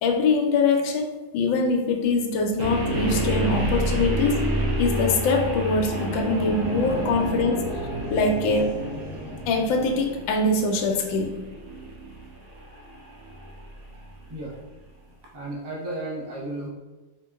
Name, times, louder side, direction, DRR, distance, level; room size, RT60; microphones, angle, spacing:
voice 1, 0.0-4.4 4.8-7.6 8.1-8.7 9.5-11.4, left 3 dB, 85° left, 3 dB, 1.3 m, -23 dB
sound 1, 2.6-14.5, right 1 dB, 85° right, 0.5 m, -30 dB
sound 2, 5.6-10.2, right 1 dB, 65° right, 1.6 m, -33 dB
voice 2, 15.2-16.7, right 2 dB, 25° right, -4 dB, 0.5 m, -33 dB
4.5 x 3.7 x 2.3 m, 1.1 s
omnidirectional pair, 2.0 m